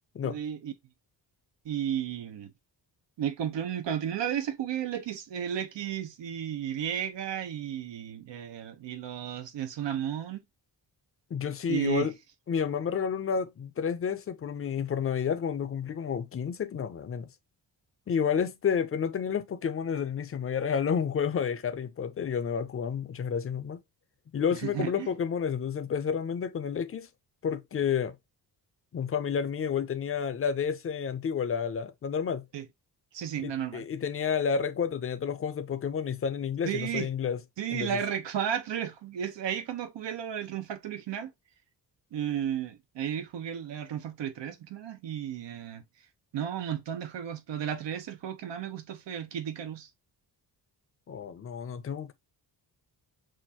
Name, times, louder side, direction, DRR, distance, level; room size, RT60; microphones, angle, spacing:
voice 1, 0.2-0.7 1.6-2.5 3.2-10.4 11.7-12.1 24.5-25.1 32.5-32.7 33.1-33.8 36.7-37.1 37.6-41.3 42.1-45.8 46.3-49.9, right 9 dB, 85° right, 1.0 m, -33 dB
voice 2, 11.3-12.1 12.5-17.3 18.1-23.8 24.3-27.1 27.4-28.2 28.9-32.4 33.4-37.4 37.7-37.9 51.1-52.1, left 7 dB, 35° left, 0.5 m, -30 dB
6.2 x 2.5 x 2.9 m
wide cardioid pair, 165°, 42 cm